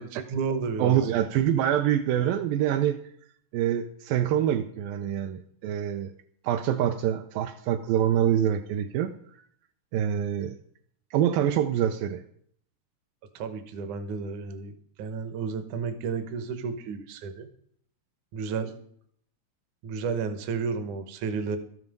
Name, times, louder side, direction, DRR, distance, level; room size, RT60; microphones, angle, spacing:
voice 1, 0.0-1.2 13.3-17.5 18.3-18.7 19.8-21.6, right 5 dB, 70° right, 10 dB, 2.0 m, -32 dB
voice 2, 0.8-3.0 3.5-6.1 6.4-9.1 9.9-10.6 11.1-12.2, right 10 dB, 85° right, 6 dB, 2.0 m, -25 dB
12.5 x 9.4 x 5.2 m, 0.65 s
omnidirectional pair, 4.7 m